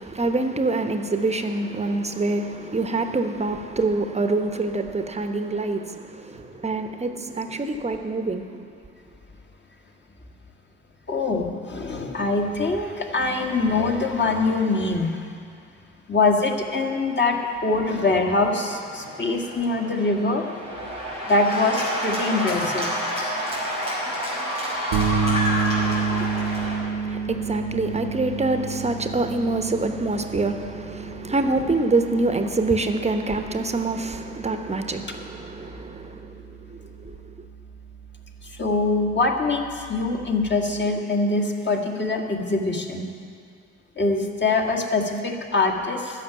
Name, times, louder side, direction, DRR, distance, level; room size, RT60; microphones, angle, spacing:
voice 1, 0.0-8.6 25.8-36.4 36.7-37.1, right 3 dB, 20° right, 1.1 m, -26 dB
voice 2, 11.1-15.3 16.1-20.4 21.3-22.9 38.6-43.1 44.0-46.2, left 3 dB, 30° left, 1.9 m, -23 dB
Cheering / Applause, 17.1-26.8, equal, 90° left, 2.9 m, -29 dB
sound 1, 24.9-40.8, right 5 dB, 65° right, 1.0 m, -31 dB
13.5 x 6.7 x 9.3 m
figure-of-eight pair, 50°, 35 cm